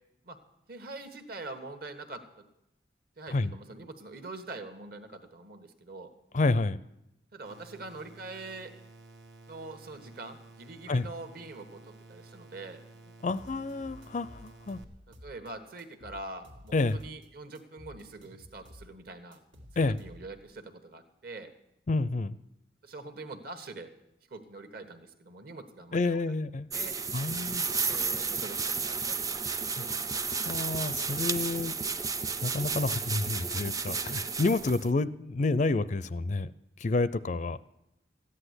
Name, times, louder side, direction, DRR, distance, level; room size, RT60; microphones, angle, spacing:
voice 1, 0.7-2.2 3.2-6.1 7.3-8.7 9.5-12.8 15.2-19.4 19.7-21.5 22.8-23.9 24.3-26.3 26.7-26.9 27.8-29.9, right 2 dB, 50° right, 8 dB, 1.3 m, -44 dB
voice 2, 6.3-6.8 10.9-11.1 13.2-14.8 16.7-17.0 19.8-20.0 21.9-22.4 25.9-26.7 27.1-27.6 29.8-29.9 30.3-31.7 32.4-36.5 36.8-37.6, left 3 dB, 40° left, 16 dB, 0.4 m, -29 dB
sound 1, 7.4-14.8, right 2 dB, 70° right, 1.4 m, -53 dB
sound 2, 13.4-15.5 15.8-17.3 17.6-20.5, left 1 dB, 90° right, 1.9 m, -52 dB
sound 3, 26.7-34.9, right 5 dB, 20° right, 0.5 m, -32 dB
14.0 x 10.0 x 8.1 m, 0.87 s
head